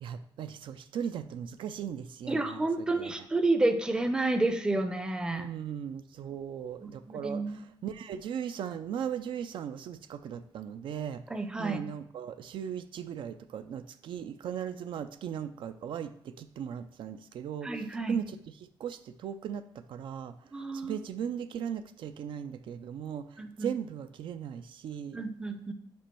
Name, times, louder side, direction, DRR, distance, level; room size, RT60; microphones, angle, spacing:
voice 1, 0.0-2.7 3.0-3.1 5.3-7.4 7.8-11.2 11.6-16.1 16.4-17.7 18.1-18.4 18.8-19.6 19.9-20.3 20.7-23.3 23.6-25.2, right 8 dB, 70° right, 11 dB, 0.4 m, -37 dB
voice 2, 2.3-5.5 6.8-7.7 11.3-11.8 17.6-18.2 20.5-20.9 23.4-23.7 25.1-25.7, right 2 dB, 10° right, 7 dB, 0.5 m, -30 dB
5.3 x 5.2 x 4.3 m, 0.67 s
wide cardioid pair, 160°, 9 cm